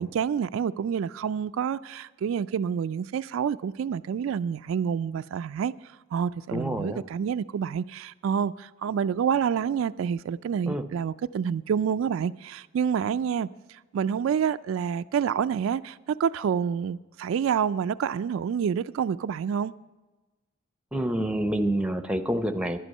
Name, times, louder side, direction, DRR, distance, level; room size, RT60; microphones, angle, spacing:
voice 1, 0.0-5.7 6.1-19.7, right 7 dB, 70° right, 0.3 m, -28 dB
voice 2, 6.5-7.0 10.7-10.9 20.9-22.8, right 1 dB, 5° right, 0.6 m, -27 dB
11.0 x 11.0 x 5.4 m
head